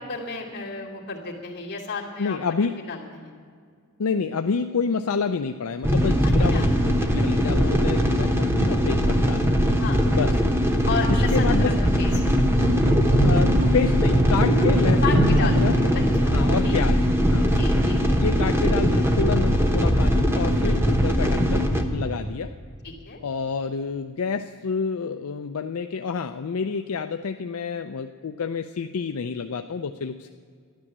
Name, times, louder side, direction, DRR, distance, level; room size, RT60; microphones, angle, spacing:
voice 1, 0.1-3.3 6.2-6.7 9.8-10.0 10.9-11.7 12.0-12.1 14.6-14.7 15.0-16.3 16.6-16.7 17.5-18.4 20.6-20.8 22.8-23.2, left 4 dB, 50° left, -3 dB, 2.6 m, -33 dB
voice 2, 2.2-2.7 4.0-9.4 10.1-10.4 11.1-11.7 13.2-17.0 17.3-17.5 18.1-21.7 21.9-22.5 23.2-30.3, left 5 dB, 75° left, 7 dB, 0.5 m, -28 dB
sound 1, 5.8-21.8, equal, 10° right, 1.0 m, -21 dB
sound 2, 12.1-16.0, right 1 dB, 60° right, 2.9 m, -24 dB
12.5 x 11.0 x 7.4 m, 2.1 s
head